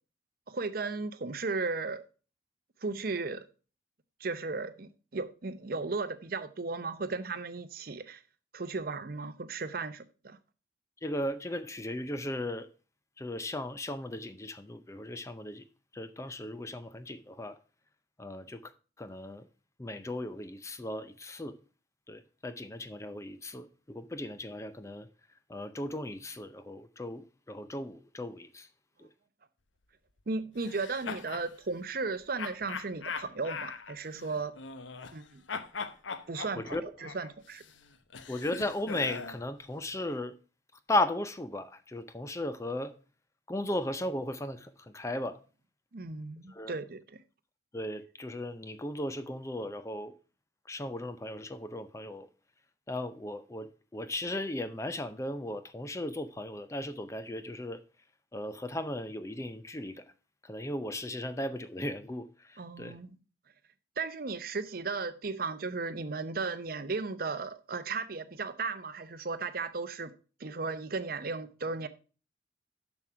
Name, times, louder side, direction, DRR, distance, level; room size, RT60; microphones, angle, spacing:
voice 1, 0.5-2.0 2.8-3.4 4.2-8.2 8.5-10.4 30.3-34.5 35.1-35.4 36.3-37.6 45.9-47.2 62.6-63.1 64.0-70.1 70.4-71.9, right 4 dB, 50° right, 0.7 m, -35 dB
voice 2, 11.0-12.7 13.2-15.6 15.9-17.6 18.2-18.7 19.0-19.5 19.8-21.6 22.1-25.1 25.5-28.7 29.0-29.1 36.6-36.8 38.3-40.4 40.9-42.9 43.5-45.4 46.5-46.7 47.7-50.1 50.7-52.3 52.9-57.8 58.3-60.0 60.4-63.0, left 1 dB, 15° left, 0.5 m, -36 dB
sound 1, 30.6-31.5 32.4-35.2 35.5-39.4, left 5 dB, 90° left, 0.9 m, -41 dB
7.4 x 6.2 x 5.6 m
head